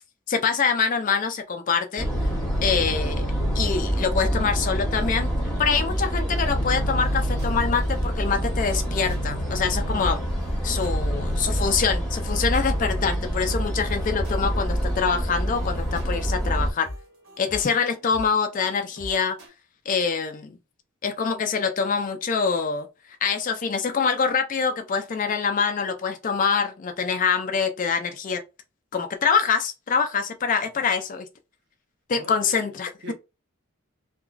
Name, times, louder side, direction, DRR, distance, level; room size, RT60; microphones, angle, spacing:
voice 1, 0.3-2.1 2.6-3.3 3.5-5.3 5.6-10.2 10.6-16.9 17.4-19.4 19.9-20.6 21.0-22.9 23.2-28.4 28.9-31.3 32.1-32.9, left 5 dB, 35° left, 0.3 m, -25 dB
sound 1, 2.0-16.7, equal, ahead, 1.1 m, -26 dB
sound 2, 6.5-19.5, left 1 dB, 80° right, 1.2 m, -43 dB
voice 2, 32.1-32.7 33.0-33.1, right 2 dB, 55° right, 0.9 m, -42 dB
2.9 x 2.3 x 2.4 m
head